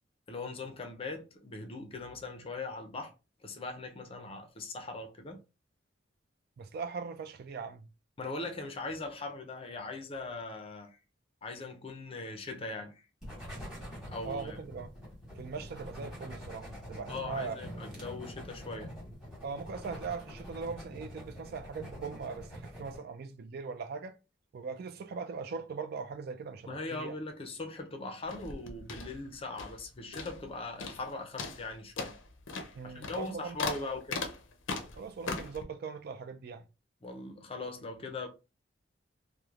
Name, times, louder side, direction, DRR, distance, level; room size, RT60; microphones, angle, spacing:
voice 1, 0.3-3.1 3.4-5.4 8.2-11.0 11.4-13.1 14.1-14.6 17.1-18.9 26.6-32.1 32.8-34.2 37.0-38.3, left 3 dB, 30° left, 0.5 m, -40 dB
voice 2, 6.6-7.9 14.3-14.9 15.4-17.5 19.4-24.1 24.5-27.1 32.8-33.6 35.0-36.6, right 5 dB, 55° right, 0.3 m, -40 dB
sound 1, 13.2-23.0, equal, 5° right, 1.1 m, -45 dB
sound 2, 28.2-29.9 30.1-30.5 30.8-31.1 31.4-35.6, left 4 dB, 85° left, 0.5 m, -39 dB
3.0 x 2.1 x 2.4 m
head